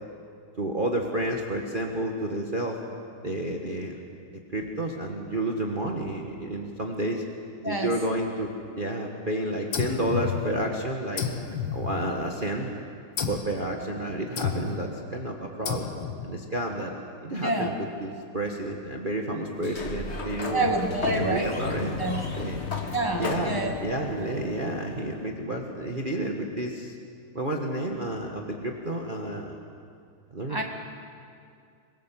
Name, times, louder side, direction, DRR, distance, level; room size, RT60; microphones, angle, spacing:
voice 1, 0.6-2.8 3.2-4.0 4.5-7.2 7.6-8.5 8.7-11.3 11.7-12.8 13.3-15.9 16.2-16.9 17.2-20.6 21.1-21.9 22.3-22.6 23.2-26.9 27.3-29.6 30.3-30.6, right 1 dB, 25° right, 1 dB, 1.4 m, -30 dB
sound 1, 9.7-10.8 11.2-12.5 13.2-13.6 14.4-14.9 15.7-16.3, left 7 dB, 65° left, 2.1 m, -31 dB
voice 2, 17.4-17.8 20.5-21.5 22.0-22.2 22.9-23.8 30.5-30.6, right 2 dB, 10° left, 2 dB, 1.7 m, -27 dB
Sliding door, 19.5-25.2, left 4 dB, 35° left, 1.9 m, -34 dB
24.5 x 21.5 x 7.5 m, 2.3 s
omnidirectional pair, 2.3 m